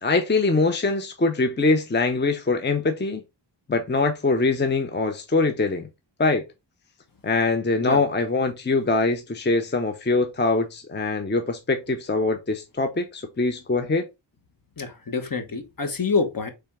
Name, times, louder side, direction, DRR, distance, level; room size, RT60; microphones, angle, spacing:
voice 1, 0.0-3.2 3.7-5.9 6.2-6.4 7.2-14.1, left 3 dB, 25° left, 0.6 m, -23 dB
voice 2, 14.8-16.5, left 4 dB, 45° left, 1.1 m, -26 dB
4.3 x 3.4 x 3.5 m
wide cardioid pair, 75°, 45 cm